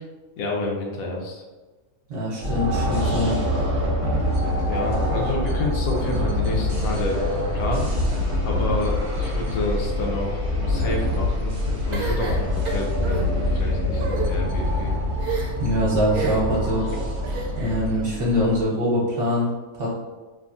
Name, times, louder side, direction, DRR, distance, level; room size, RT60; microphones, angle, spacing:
voice 1, 0.4-1.4 3.0-3.3 4.7-7.8 8.4-11.6 11.9-14.9, left 2 dB, 75° left, -1 dB, 1.0 m, -29 dB
voice 2, 2.1-3.4 15.6-16.8 17.6-19.5 19.7-19.9, left 1 dB, 60° right, -7 dB, 1.2 m, -23 dB
sound 1, 2.4-18.6, left 1 dB, 35° right, 0.5 m, -25 dB
sound 2, 11.9-13.2 13.9-14.3 15.2-15.7 16.1-16.6 17.2-17.8, right 5 dB, 90° right, 1.1 m, -30 dB
3.4 x 2.0 x 2.5 m, 1.2 s
omnidirectional pair, 1.5 m